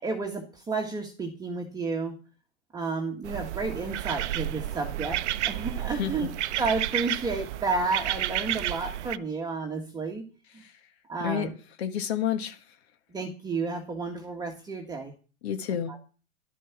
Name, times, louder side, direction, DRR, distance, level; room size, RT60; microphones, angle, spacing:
voice 1, 0.0-2.2 2.7-6.3 6.6-10.2 10.5-10.6 11.1-11.5 13.1-15.1 15.9-16.0, right 3 dB, 10° right, 1 dB, 1.6 m, -31 dB
sound 1, 3.2-9.2, right 13 dB, 55° right, 0.8 m, -31 dB
voice 2, 11.8-12.6 15.4-15.9, left 9 dB, 50° left, 7 dB, 1.7 m, -30 dB
12.0 x 9.8 x 6.0 m, 0.37 s
hypercardioid pair, 135°, 41 cm